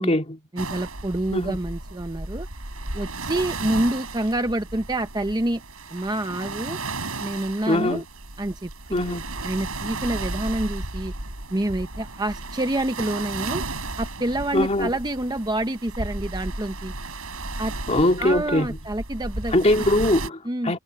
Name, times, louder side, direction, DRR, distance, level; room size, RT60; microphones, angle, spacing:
voice 1, 0.0-0.4 1.3-1.6 7.7-8.0 8.9-9.3 14.5-14.9 17.9-18.8 19.5-20.8, left 1 dB, 30° left, 2.4 m, -22 dB
voice 2, 0.5-2.5 2.9-5.6 5.9-6.8 7.2-8.0 8.4-11.1 11.5-13.6 14.0-16.9 17.6-17.7 18.2-19.9 20.4-20.7, right 1 dB, 20° right, 0.8 m, -27 dB
sound 1, 0.6-20.3, right 2 dB, 75° right, 7.7 m, -34 dB
head